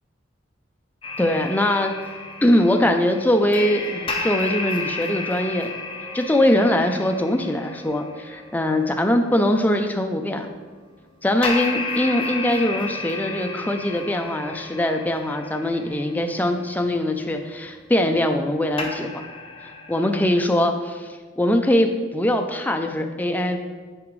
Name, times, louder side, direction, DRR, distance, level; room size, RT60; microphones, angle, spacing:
sound 1, 1.0-9.8 11.4-18.5 18.8-20.4, left 3 dB, 25° left, 0.8 m, -33 dB
voice 1, 1.2-1.9 2.4-5.7 6.1-10.5 11.2-19.1 19.9-23.6, left 1 dB, 10° left, 5 dB, 0.4 m, -22 dB
9.4 x 4.9 x 3.1 m, 1.5 s
head